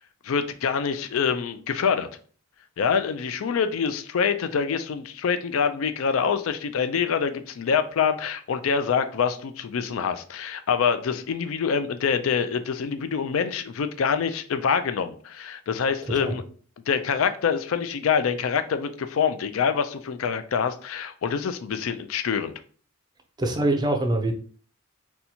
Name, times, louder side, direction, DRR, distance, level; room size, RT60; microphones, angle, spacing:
voice 1, 0.2-2.1 2.8-16.4 16.9-22.5, left 6 dB, 85° left, 0.4 m, -25 dB
voice 2, 23.4-24.3, right 1 dB, 20° right, 0.4 m, -24 dB
4.2 x 2.3 x 2.7 m
head